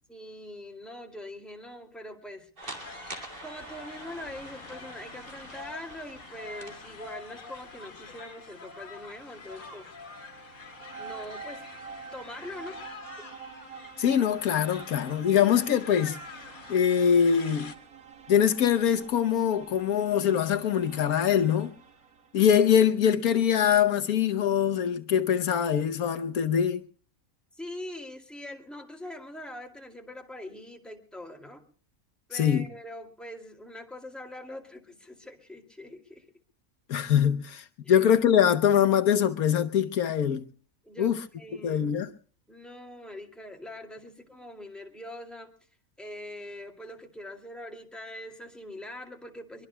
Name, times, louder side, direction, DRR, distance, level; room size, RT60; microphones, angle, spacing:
voice 1, 0.1-2.5 3.4-9.9 11.0-11.6 12.1-13.0 27.5-31.6 32.3-36.3 37.8-38.1 40.8-41.9 42.5-45.5 46.0-49.7, left 1 dB, ahead, 2.3 m, -43 dB
sound 1, 2.6-17.7, left 4 dB, 60° left, 2.0 m, -46 dB
sound 2, 2.6-7.8, right 2 dB, 35° right, 2.8 m, -46 dB
sound 3, 9.7-22.5, right 6 dB, 70° right, 2.0 m, -48 dB
voice 2, 14.0-16.2 16.7-17.7 18.3-21.7 22.3-26.8 32.3-32.7 36.9-40.4 41.0-41.2 41.6-42.1, left 8 dB, 80° left, 1.4 m, -23 dB
23.5 x 23.0 x 2.2 m
omnidirectional pair, 1.5 m